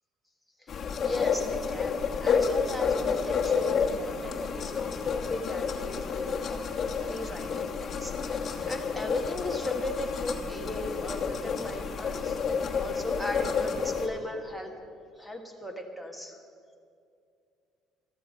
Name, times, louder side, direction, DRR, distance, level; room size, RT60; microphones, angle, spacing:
voice 1, 0.6-6.6 7.1-12.4 12.8-14.7 15.2-16.4, left 1 dB, 5° right, 4 dB, 1.4 m, -37 dB
sound 1, 0.7-14.1, left 5 dB, 40° left, 1.3 m, -30 dB
13.5 x 13.0 x 5.3 m, 2.4 s
cardioid pair, 120°, 0 cm